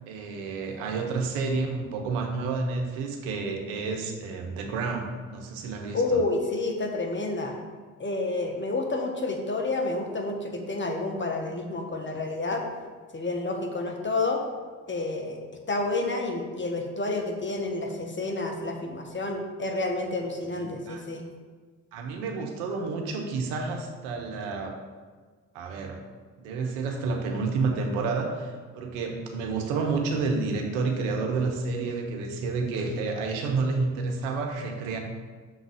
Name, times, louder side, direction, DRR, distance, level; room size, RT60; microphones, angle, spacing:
voice 1, 0.1-6.2 20.5-21.0 21.9-24.8 25.5-26.0 26.4-35.0, right 4 dB, 85° right, 2 dB, 1.1 m, -30 dB
voice 2, 5.9-7.5 8.0-12.6 13.1-14.4 14.9-15.4 15.7-21.3, left 2 dB, 30° left, 3 dB, 1.4 m, -29 dB
6.5 x 4.0 x 6.4 m, 1.5 s
hypercardioid pair, 55°, 39 cm